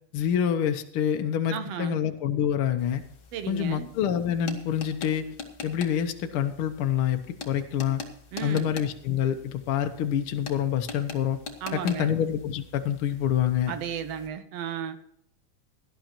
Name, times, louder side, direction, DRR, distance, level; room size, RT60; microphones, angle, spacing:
voice 1, 0.1-3.0 3.5-5.3 5.6-8.0 8.4-11.4 11.7-13.7, left 9 dB, 75° left, 6 dB, 1.2 m, -27 dB
voice 2, 1.5-2.0 3.3-3.9 8.3-8.7 11.6-12.1 13.7-15.0, right 8 dB, 65° right, 10 dB, 1.9 m, -34 dB
sound 1, 2.8-14.3, left 5 dB, 45° left, 1.4 m, -44 dB
17.5 x 11.5 x 3.0 m, 0.72 s
omnidirectional pair, 3.6 m